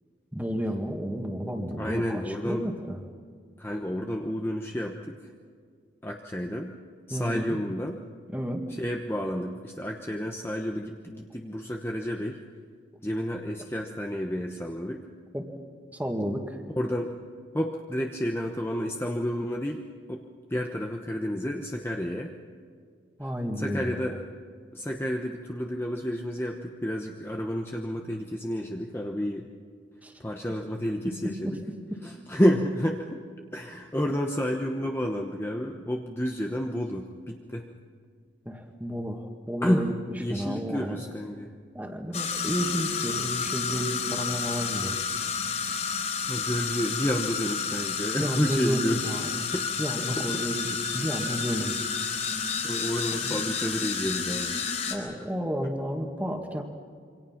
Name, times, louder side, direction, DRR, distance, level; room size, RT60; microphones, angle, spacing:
voice 1, 0.3-3.0 7.1-7.6 8.3-8.6 15.3-15.5 15.9-16.6 23.2-24.0 30.0-30.1 31.4-31.6 38.5-39.9 40.3-41.0 41.7-45.2 48.2-49.5 49.8-50.7 50.9-51.7 53.2-53.4 54.9-56.6, equal, 10° right, 3 dB, 2.1 m, -32 dB
voice 2, 1.8-2.7 3.6-5.3 6.0-6.8 7.1-8.0 8.7-12.4 13.0-15.0 16.8-17.1 17.5-19.8 20.1-20.2 20.5-22.3 23.6-24.2 24.7-29.5 30.2-31.6 32.0-33.2 33.5-37.7 39.6-39.9 40.2-41.5 46.3-49.2 49.5-49.7 50.1-50.4 52.6-54.6 55.2-55.3 55.6-55.7, equal, 10° left, 1 dB, 1.0 m, -30 dB
sound 1, 42.1-55.0, left 6 dB, 40° left, 4.2 m, -30 dB
27.0 x 24.5 x 5.9 m, 2.1 s
head